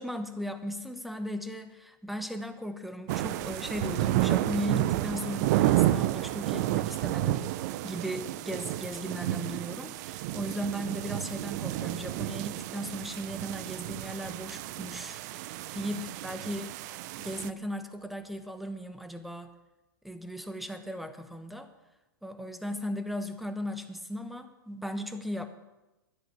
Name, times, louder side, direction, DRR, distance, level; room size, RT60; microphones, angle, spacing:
voice 1, 0.0-7.5 7.8-16.7 17.2-19.5 20.0-21.7 22.2-25.5, equal, ahead, 8 dB, 1.2 m, -37 dB
sound 1, 3.1-17.5, right 15 dB, 50° right, 0.6 m, -31 dB
11.0 x 11.0 x 7.2 m, 1.0 s
hypercardioid pair, 120°, 12 cm